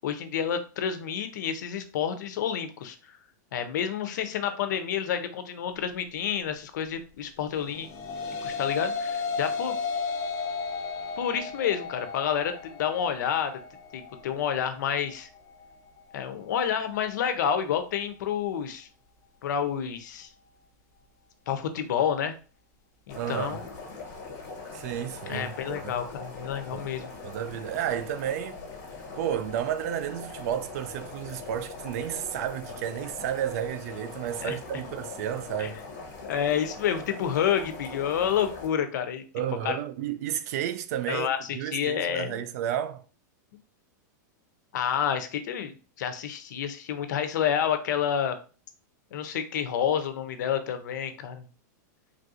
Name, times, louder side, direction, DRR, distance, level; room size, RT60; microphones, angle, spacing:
voice 1, 0.0-3.0 3.5-7.9 8.4-9.8 11.2-13.6 13.9-15.3 16.1-18.9 19.4-20.3 21.5-22.3 23.1-23.6 25.3-27.1 34.4-34.6 35.6-35.7 36.2-39.2 39.6-39.8 41.1-42.4 44.7-48.4 49.1-51.5, left 8 dB, 75° left, 0.6 m, -29 dB
sound 1, 7.6-16.8, left 4 dB, 30° left, 0.5 m, -34 dB
sound 2, 23.1-38.7, left 3 dB, 45° left, 1.3 m, -42 dB
voice 2, 23.1-23.6 24.7-25.9 26.7-26.9 27.2-28.6 29.2-35.8 39.3-43.0, right 10 dB, 55° right, 0.4 m, -32 dB
3.3 x 2.6 x 2.4 m
supercardioid pair, 150°, 10 cm